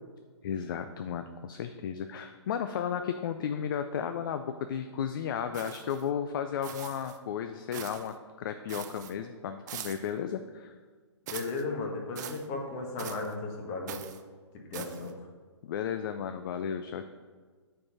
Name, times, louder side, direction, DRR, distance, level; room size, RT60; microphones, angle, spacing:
voice 1, 0.4-10.8 15.6-17.1, left 8 dB, 45° left, 8 dB, 0.4 m, -34 dB
sound 1, 5.5-6.1 6.6-7.2 7.7-8.1 8.7-9.1 9.7-10.1 11.3-11.6 12.2-12.5 13.0-13.3 13.9-14.2 14.7-15.1, right 9 dB, 40° right, 0.5 m, -43 dB
voice 2, 11.3-14.0 14.7-15.1, left 3 dB, 30° left, 1 dB, 1.3 m, -35 dB
6.3 x 4.6 x 5.6 m, 1.5 s
hypercardioid pair, 145°, 15 cm